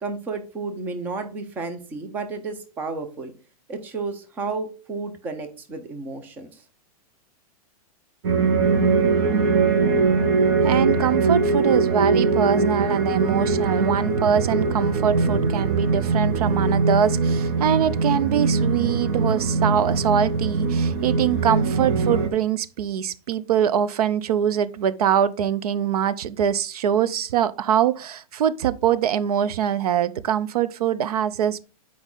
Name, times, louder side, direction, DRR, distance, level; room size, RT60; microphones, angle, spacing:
voice 1, 0.0-3.3 3.7-6.6, right 4 dB, 10° right, 0.5 m, -32 dB
sound 1, 8.2-22.3, right 4 dB, 45° right, 0.8 m, -21 dB
voice 2, 10.6-31.6, right 9 dB, 85° right, 0.6 m, -23 dB
8.1 x 4.7 x 3.8 m
supercardioid pair, 175°, 19 cm